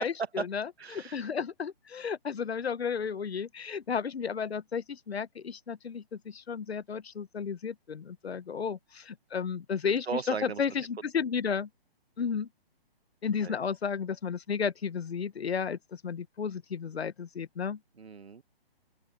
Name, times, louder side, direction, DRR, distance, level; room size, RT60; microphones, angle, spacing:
voice 1, 0.0-0.7 0.9-11.7 12.2-12.5 13.2-17.8, left 6 dB, 90° left, 1.0 m, -33 dB
voice 2, 0.8-1.3 10.1-10.6 13.4-13.6 18.0-18.4, right 5 dB, 90° right, 1.4 m, -36 dB
open air
hypercardioid pair, 155°, 31 cm